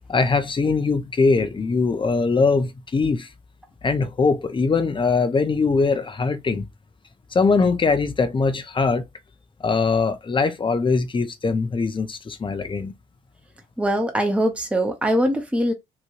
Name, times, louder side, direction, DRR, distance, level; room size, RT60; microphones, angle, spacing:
voice 1, 0.1-3.3 3.8-6.6 7.3-9.0 9.6-12.9, left 4 dB, 25° left, 0.7 m, -21 dB
voice 2, 13.8-15.7, equal, 5° right, 0.9 m, -22 dB
3.1 x 2.6 x 2.5 m
hypercardioid pair, 45°, 20 cm